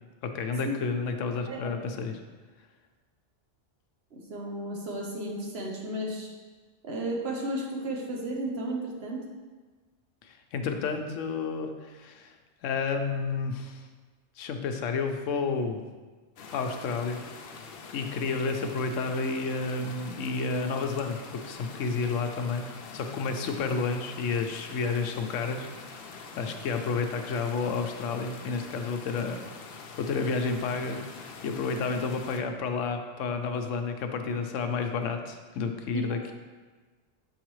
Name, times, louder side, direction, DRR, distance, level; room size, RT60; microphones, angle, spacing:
voice 1, 0.2-2.2 10.2-12.3 12.6-13.8 14.4-15.8 16.5-17.2 17.9-22.6 22.9-26.0 26.4-29.4 30.0-31.0 31.4-36.3, left 4 dB, 85° left, 6 dB, 1.0 m, -30 dB
voice 2, 4.1-6.3 6.8-9.3 35.9-36.0, right 1 dB, 60° right, -1 dB, 1.1 m, -33 dB
sound 1, 16.4-32.4, left 4 dB, 60° left, 0.7 m, -45 dB
7.2 x 4.8 x 3.1 m, 1.4 s
omnidirectional pair, 1.3 m